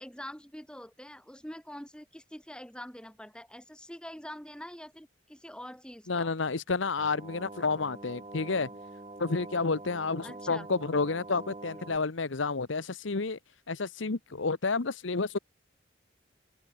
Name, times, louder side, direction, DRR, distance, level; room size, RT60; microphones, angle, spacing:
voice 1, 0.0-6.6 10.2-10.7, equal, 5° left, 5.7 m, -45 dB
voice 2, 6.1-8.7 9.2-13.4 13.7-15.4, left 4 dB, 75° left, 1.0 m, -30 dB
sound 1, 7.0-12.0, right 2 dB, 25° right, 1.5 m, -45 dB
head